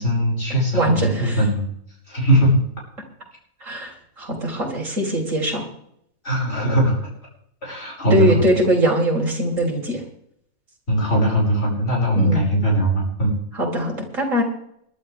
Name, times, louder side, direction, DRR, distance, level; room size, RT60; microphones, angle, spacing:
voice 1, 0.0-1.6 2.1-2.6 6.2-7.1 7.6-8.3 10.9-13.3, right 1 dB, 45° left, -3 dB, 6.0 m, -20 dB
voice 2, 0.7-1.4 3.6-5.7 8.1-10.0 12.1-12.4 13.5-14.4, equal, 60° right, -1 dB, 4.4 m, -21 dB
21.0 x 11.5 x 3.4 m, 0.71 s
omnidirectional pair, 1.5 m